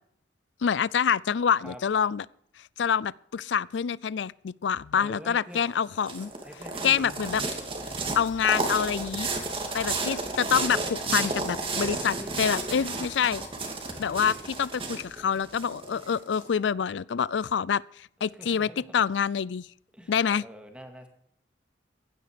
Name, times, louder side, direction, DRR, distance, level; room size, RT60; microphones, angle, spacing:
voice 1, 0.6-2.2 2.8-6.3 6.8-7.4 8.2-9.3 9.7-13.4 14.0-19.7 20.1-20.4, left 7 dB, 70° left, 0.4 m, -26 dB
voice 2, 5.0-5.6 5.9-6.0 6.4-7.2 9.3-10.0 12.0-12.4 18.4-18.8 19.9-21.1, equal, 5° right, 2.1 m, -45 dB
sound 1, 5.6-16.4, right 3 dB, 30° right, 2.3 m, -32 dB
16.0 x 11.0 x 5.0 m
head